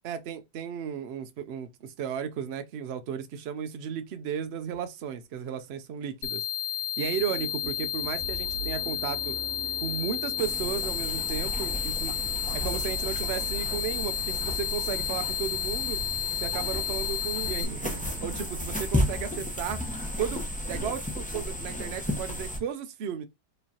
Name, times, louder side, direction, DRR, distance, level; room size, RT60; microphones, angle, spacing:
voice 1, 0.0-6.4 7.0-9.4 9.8-12.2 12.5-16.0 16.4-19.8 20.2-23.2, right 8 dB, 80° right, 0.5 m, -34 dB
sound 1, 4.7-4.8 5.3-5.7 6.0-6.1 6.4-6.5 6.8-18.4, right 4 dB, 30° right, 1.2 m, -43 dB
sound 2, 6.2-17.6, left 9 dB, 60° left, 0.5 m, -32 dB
sound 3, 10.4-22.6, left 1 dB, 10° left, 0.5 m, -33 dB
4.9 x 3.2 x 2.8 m
omnidirectional pair, 1.8 m